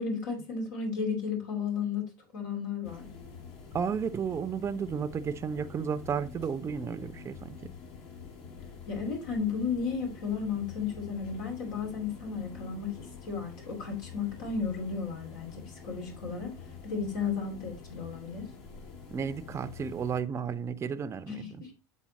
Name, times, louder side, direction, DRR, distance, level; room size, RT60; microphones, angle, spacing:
voice 1, 0.0-3.1 8.9-16.6 16.8-18.5 21.3-21.7, left 5 dB, 85° left, 2.6 m, -34 dB
sound 1, 2.8-20.2, left 5 dB, 65° left, 1.9 m, -47 dB
voice 2, 3.7-7.7 19.1-21.6, right 7 dB, 25° right, 0.5 m, -33 dB
7.4 x 3.6 x 4.0 m
supercardioid pair, 100°, 10 cm